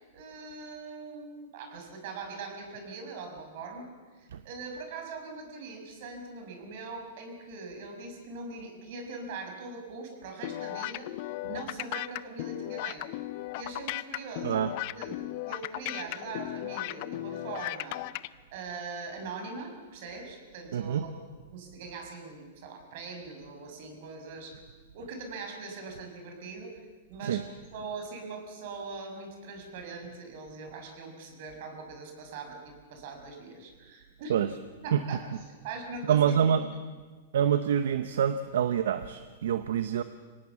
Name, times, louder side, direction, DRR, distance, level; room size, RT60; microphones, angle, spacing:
voice 1, 0.1-3.9 4.2-11.1 11.4-13.1 13.6-14.6 14.9-15.2 15.4-18.0 18.5-21.2 21.5-24.6 24.9-26.7 27.1-34.4 34.8-36.5, right 3 dB, 60° right, 4 dB, 5.8 m, -41 dB
sound 1, 10.4-18.3, left 17 dB, 50° left, 0.7 m, -36 dB
voice 2, 20.7-21.0 27.2-27.4 34.3-34.5 34.9-35.0 36.1-36.7 37.3-40.0, right 9 dB, 75° right, 11 dB, 0.9 m, -26 dB
25.5 x 18.5 x 7.2 m, 1.4 s
hypercardioid pair, 130°, 0 cm